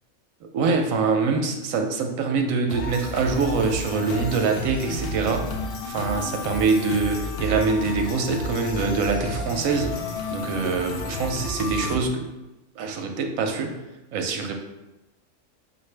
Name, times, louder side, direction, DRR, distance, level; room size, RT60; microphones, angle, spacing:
voice 1, 0.5-5.5 5.9-9.9 10.3-12.3 12.8-13.8 14.1-14.5, right 4 dB, 85° right, 4 dB, 1.0 m, -24 dB
sound 1, 2.7-12.0, left 1 dB, 60° left, 0.7 m, -31 dB
5.7 x 2.5 x 3.2 m, 1.0 s
omnidirectional pair, 1.4 m